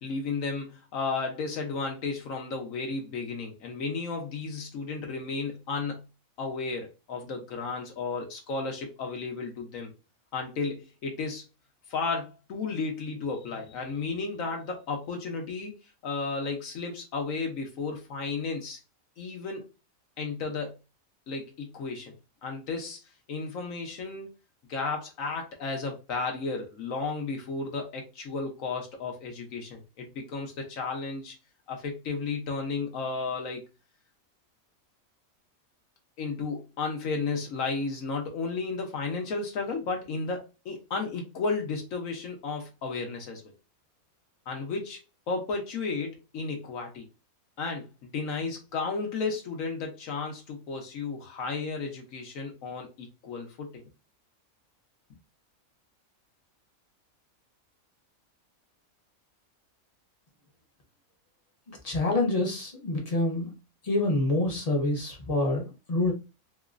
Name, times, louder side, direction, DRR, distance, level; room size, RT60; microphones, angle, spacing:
voice 1, 0.0-6.0 6.4-9.9 10.3-11.4 11.9-15.7 16.0-18.8 19.2-19.6 20.2-20.7 21.3-22.2 22.4-23.0 23.3-24.3 24.7-31.3 31.7-33.6 36.2-43.4 44.5-47.0 47.6-53.8, left 4 dB, 70° left, 1.1 m, -33 dB
voice 2, 61.7-63.5 63.8-66.1, left 2 dB, 35° left, 0.7 m, -27 dB
3.0 x 2.9 x 2.4 m
omnidirectional pair, 1.5 m